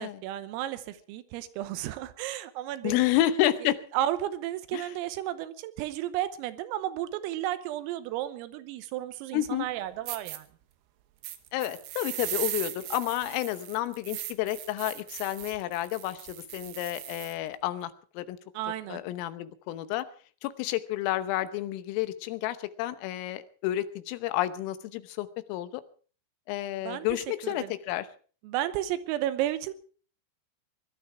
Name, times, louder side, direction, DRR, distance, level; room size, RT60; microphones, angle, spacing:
voice 1, 0.0-3.1 3.9-10.5 18.6-19.0 26.9-27.1 27.4-27.7 28.4-29.7, right 13 dB, 90° right, 12 dB, 3.7 m, -33 dB
voice 2, 2.8-3.8 4.7-4.9 9.3-9.7 11.5-18.4 18.9-20.1 20.4-25.8 26.5-28.1, left 14 dB, 85° left, 12 dB, 3.6 m, -30 dB
sound 1, 9.6-9.7 10.1-10.4 11.2-17.4, right 13 dB, 70° right, 2.6 m, -38 dB
21.0 x 12.0 x 4.8 m, 0.41 s
omnidirectional pair, 5.9 m